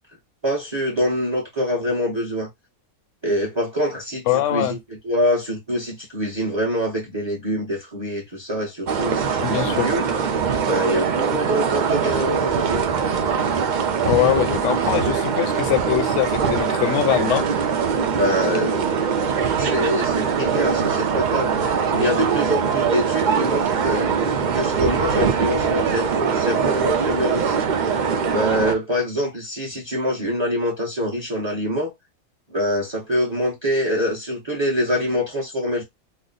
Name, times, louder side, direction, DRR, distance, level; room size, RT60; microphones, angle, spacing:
voice 1, 0.4-2.5 3.2-4.8 5.0-10.0 10.6-12.9 18.2-19.3 19.6-21.5 21.9-24.1 24.5-27.7 28.3-31.9 32.5-35.8, equal, 20° right, 0.9 m, -25 dB
voice 2, 4.3-4.8 9.4-9.9 14.0-17.4, left 13 dB, 70° left, 0.8 m, -22 dB
sound 1, 8.9-28.7, right 6 dB, 70° right, 0.4 m, -22 dB
3.2 x 2.0 x 3.9 m
omnidirectional pair, 1.5 m